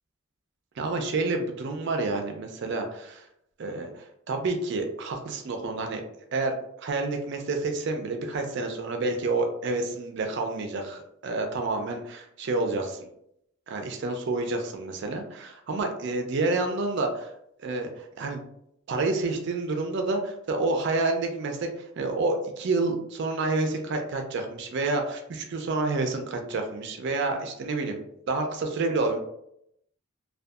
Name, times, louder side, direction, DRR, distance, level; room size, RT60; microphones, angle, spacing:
voice 1, 0.8-3.2 3.6-6.0 6.3-6.5 6.8-13.0 13.7-17.3 17.6-18.4 18.9-21.7 22.0-28.0 28.3-29.2, right 3 dB, 55° right, 4 dB, 0.4 m, -29 dB
2.6 x 2.2 x 2.3 m, 0.75 s
head